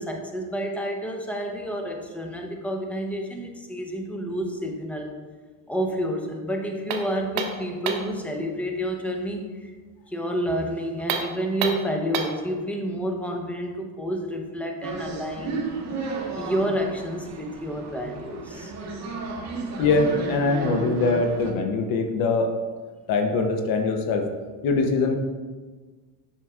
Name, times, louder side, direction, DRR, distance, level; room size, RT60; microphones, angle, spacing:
voice 1, 0.0-5.1 5.7-9.7 10.1-15.6 16.4-18.7, equal, 5° left, 2 dB, 0.7 m, -29 dB
sound 1, 6.9-8.2 11.0-12.5, right 6 dB, 65° right, 0.8 m, -29 dB
sound 2, 14.8-21.5, right 3 dB, 40° right, 1.2 m, -33 dB
voice 2, 19.8-22.6 23.1-24.3 24.6-25.2, left 3 dB, 60° left, 5 dB, 0.8 m, -22 dB
8.1 x 5.7 x 2.4 m, 1.4 s
cardioid pair, 120°, 40 cm